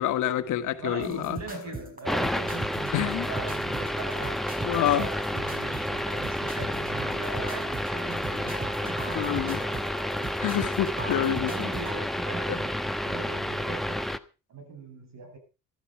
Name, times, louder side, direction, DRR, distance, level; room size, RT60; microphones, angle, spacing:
voice 1, 0.0-1.4 2.9-3.3 4.6-5.1 9.1-9.6 10.4-11.7 12.5-12.6, left 11 dB, 85° left, 1.6 m, -27 dB
voice 2, 0.8-9.4 10.4-10.5 11.5-14.1 14.5-15.4, right 3 dB, 60° right, 7.9 m, -40 dB
sound 1, 1.0-12.0, right 3 dB, 30° right, 5.2 m, -40 dB
sound 2, 2.1-14.2, equal, ahead, 1.1 m, -30 dB
15.0 x 13.0 x 4.7 m
cardioid pair, 90°, 30 cm